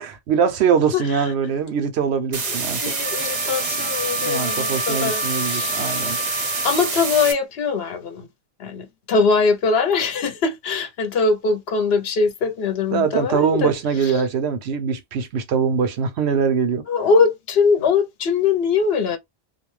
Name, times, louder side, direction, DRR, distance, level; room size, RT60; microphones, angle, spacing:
voice 1, 0.0-2.8 3.6-3.8 4.1-6.2 12.9-16.8, right 6 dB, 80° right, 0.9 m, -22 dB
voice 2, 0.9-1.3 2.5-6.2 6.6-8.3 8.6-13.7 14.0-14.2 16.9-19.2, left 5 dB, 70° left, 0.9 m, -22 dB
sound 1, 2.3-7.3, right 4 dB, 40° right, 0.6 m, -26 dB
Wind instrument woodwind instrument, 3.0-7.0, left 2 dB, 10° left, 0.5 m, -31 dB
2.5 x 2.1 x 3.1 m
omnidirectional pair, 1.1 m